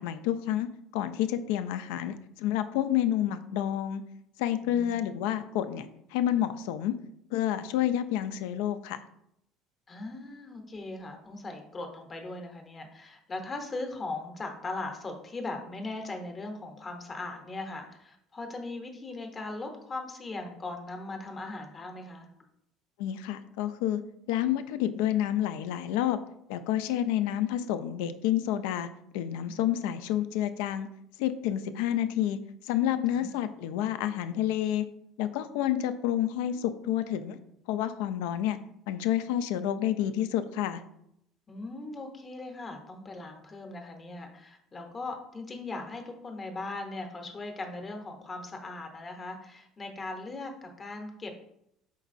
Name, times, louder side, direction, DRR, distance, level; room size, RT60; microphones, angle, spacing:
voice 1, 0.0-4.0 4.4-7.0 7.3-9.0 23.0-24.0 24.3-26.2 26.5-28.9 29.1-30.9 31.2-34.9 35.2-37.4 37.7-38.6 38.9-40.8, left 11 dB, 90° left, 11 dB, 0.3 m, -29 dB
voice 2, 4.6-4.9 9.9-22.3 33.1-33.3 41.5-51.3, left 2 dB, 20° left, 4 dB, 0.6 m, -39 dB
4.4 x 4.0 x 2.5 m, 0.77 s
cardioid pair, 145°, 0 cm